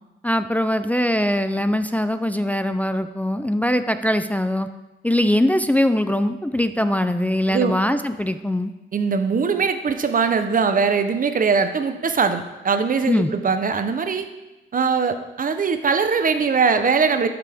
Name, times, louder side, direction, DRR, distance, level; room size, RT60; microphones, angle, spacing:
voice 1, 0.2-4.7 5.0-8.7 13.1-13.3, left 1 dB, 5° left, 9 dB, 0.3 m, -21 dB
voice 2, 8.9-14.2 14.7-17.3, right 5 dB, 40° right, 8 dB, 0.7 m, -21 dB
11.5 x 6.0 x 3.5 m, 1.1 s
cardioid pair, 105°, 20 cm